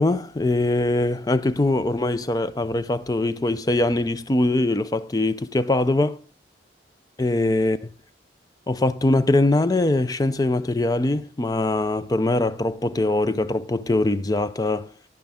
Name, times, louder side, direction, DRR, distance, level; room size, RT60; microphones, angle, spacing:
voice 1, 0.0-6.2 7.2-7.8 8.7-14.9, left 2 dB, 20° left, 0.4 m, -22 dB
10.5 x 10.5 x 3.6 m
head